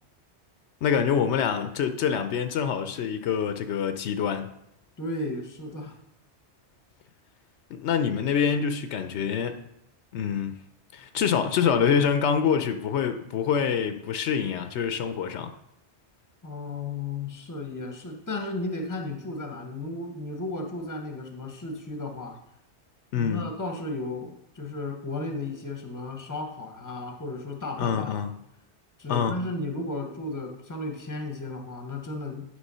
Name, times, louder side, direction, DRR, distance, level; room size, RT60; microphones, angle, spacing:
voice 1, 0.8-4.5 7.7-9.6 10.1-10.5 10.9-15.5 23.1-23.5 27.8-28.3 29.1-29.4, left 7 dB, 80° left, 0.9 m, -26 dB
voice 2, 5.0-6.0 16.4-22.4 23.1-28.2 29.0-32.4, left 2 dB, 20° left, 0.8 m, -34 dB
9.4 x 3.3 x 5.5 m
omnidirectional pair, 1.1 m